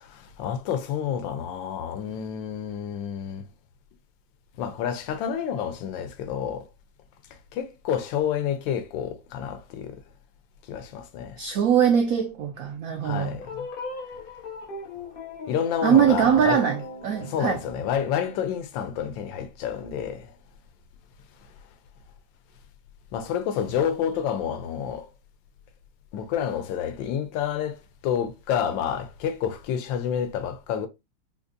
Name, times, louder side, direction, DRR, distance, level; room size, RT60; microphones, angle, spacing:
voice 1, 0.4-3.4 4.6-6.6 7.5-10.0 10.7-11.4 13.0-13.5 15.5-16.6 17.3-20.3 23.1-25.1 26.1-27.8 28.0-30.9, left 8 dB, 90° left, 1.3 m, -29 dB
voice 2, 11.4-13.4 15.8-17.6, right 8 dB, 85° right, 0.7 m, -22 dB
sound 1, 13.4-18.4, left 2 dB, 70° left, 0.5 m, -38 dB
4.0 x 2.5 x 2.5 m
omnidirectional pair, 2.0 m